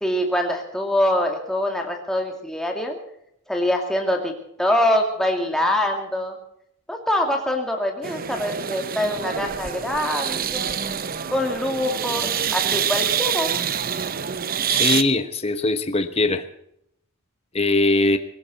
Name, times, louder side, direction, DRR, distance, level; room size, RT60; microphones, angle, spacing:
voice 1, 0.0-3.0 3.5-4.3 4.6-6.4 6.9-10.7 11.3-13.5, left 1 dB, ahead, 1 dB, 2.5 m, -24 dB
sound 1, 8.0-15.0, right 8 dB, 45° right, 0.8 m, -26 dB
voice 2, 14.7-16.4 17.5-18.2, left 2 dB, 30° left, 9 dB, 1.2 m, -21 dB
19.0 x 17.0 x 4.1 m, 0.74 s
head